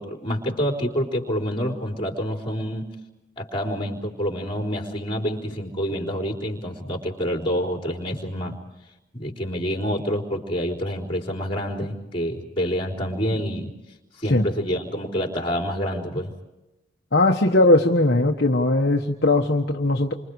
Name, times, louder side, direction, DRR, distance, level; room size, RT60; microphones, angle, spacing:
voice 1, 0.0-2.8 3.4-8.6 9.1-13.7 14.2-16.3, equal, 25° left, 1 dB, 4.1 m, -27 dB
voice 2, 17.1-20.1, left 2 dB, 55° left, 1 dB, 1.4 m, -19 dB
29.5 x 25.5 x 4.8 m, 0.97 s
head